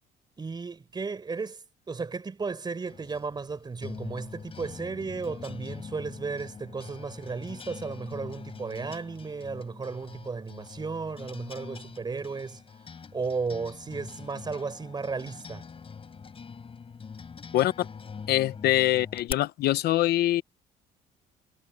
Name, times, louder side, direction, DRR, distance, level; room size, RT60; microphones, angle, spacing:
voice 1, 0.4-12.6 13.1-15.7, right 4 dB, 25° right, 4.4 m, -34 dB
sound 1, 2.9-19.3, left 5 dB, 35° left, 6.9 m, -44 dB
voice 2, 17.5-17.9 18.3-20.4, left 14 dB, 70° left, 0.9 m, -24 dB
cardioid pair, 110°, 17 cm